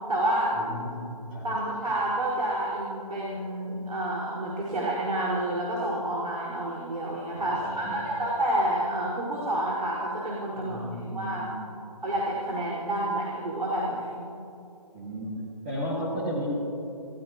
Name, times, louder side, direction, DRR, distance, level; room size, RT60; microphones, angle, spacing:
voice 1, 0.0-0.6 1.4-10.8 11.1-11.5 12.0-14.3, right 1 dB, 85° right, -5 dB, 4.7 m, -29 dB
voice 2, 0.5-1.5 7.3-8.1 10.5-11.6 14.9-15.4 15.6-16.5, equal, 15° right, -8 dB, 1.8 m, -35 dB
27.5 x 16.0 x 2.9 m, 2.9 s
hypercardioid pair, 180°, 20 cm